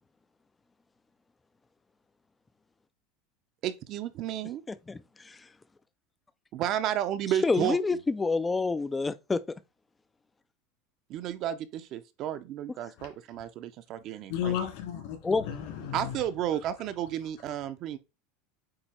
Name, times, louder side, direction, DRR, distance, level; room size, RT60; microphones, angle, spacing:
voice 1, 3.6-4.6 6.5-7.8 11.1-14.5 15.9-18.0, right 11 dB, 40° right, 0.7 m, -32 dB
voice 2, 4.7-5.0 5.3-5.4 7.4-9.4 15.2-15.4, left 3 dB, 10° left, 0.4 m, -27 dB
voice 3, 13.0-13.4 14.3-16.2, left 9 dB, 65° left, 2.9 m, -34 dB
8.7 x 3.0 x 4.3 m
supercardioid pair, 155°, 0 cm